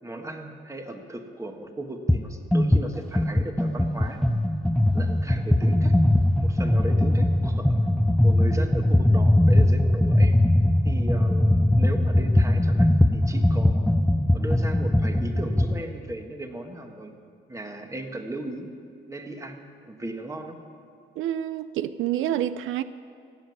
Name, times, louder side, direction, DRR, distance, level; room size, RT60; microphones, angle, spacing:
voice 1, 0.0-4.2 4.9-5.9 6.4-7.8 8.2-10.4 10.8-14.0 14.3-17.2 17.5-18.7 19.1-20.6, right 1 dB, 15° right, 1.6 m, -36 dB
sound 1, 2.1-2.2 2.5-15.8, left 1 dB, ahead, 0.5 m, -21 dB
voice 2, 21.2-22.8, right 11 dB, 85° right, 0.5 m, -28 dB
15.5 x 7.8 x 9.4 m
cardioid pair, 90°, 20 cm